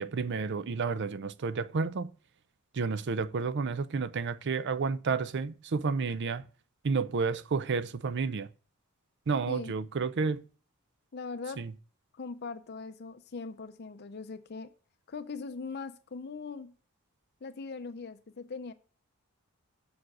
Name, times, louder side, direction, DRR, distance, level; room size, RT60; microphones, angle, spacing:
voice 1, 0.0-2.1 2.7-6.5 6.8-8.5 9.3-10.4 11.6-11.7, right 4 dB, 55° right, 0.5 m, -31 dB
voice 2, 11.1-11.6 12.1-14.7 15.1-16.7 17.4-18.7, left 4 dB, 50° left, 0.5 m, -40 dB
7.2 x 6.3 x 6.1 m
head